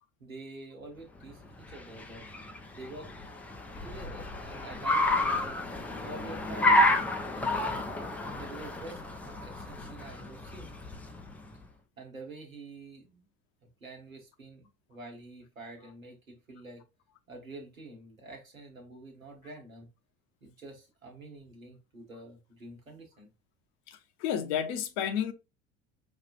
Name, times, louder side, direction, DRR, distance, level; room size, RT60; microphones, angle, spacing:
voice 1, 0.2-2.3 2.7-3.1 3.8-5.6 6.0-7.7 8.3-10.8 12.0-13.3 13.8-16.8 17.3-19.9 20.4-23.3, right 2 dB, 85° right, 1.1 m, -47 dB
Car, 1.3-11.5, left 1 dB, 5° left, 0.3 m, -30 dB
voice 2, 23.9-25.3, left 9 dB, 50° left, 0.7 m, -31 dB
5.2 x 2.4 x 2.4 m
figure-of-eight pair, 65°, 40 cm